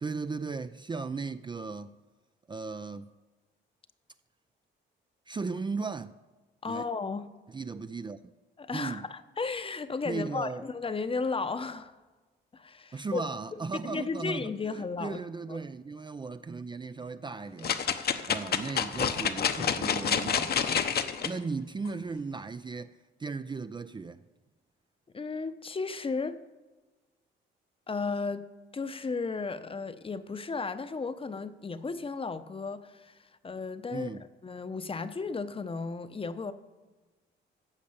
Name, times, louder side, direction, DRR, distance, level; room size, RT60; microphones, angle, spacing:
voice 1, 0.0-1.9 2.5-3.1 5.3-6.1 6.7-6.8 7.5-8.3 8.7-9.0 10.0-10.6 12.9-17.8 18.3-20.9 21.2-22.9 23.2-24.2 33.9-34.2, right 4 dB, 25° right, 0.5 m, -36 dB
voice 2, 6.6-7.3 8.6-11.9 12.5-13.3 13.8-15.6 25.1-26.4 27.9-28.5 28.7-33.2 33.4-34.1 34.4-36.5, left 4 dB, 25° left, 0.8 m, -34 dB
sound 1, 17.6-21.3 21.9-22.0, left 7 dB, 55° left, 1.0 m, -28 dB
15.0 x 5.3 x 8.6 m
cardioid pair, 90°, 20 cm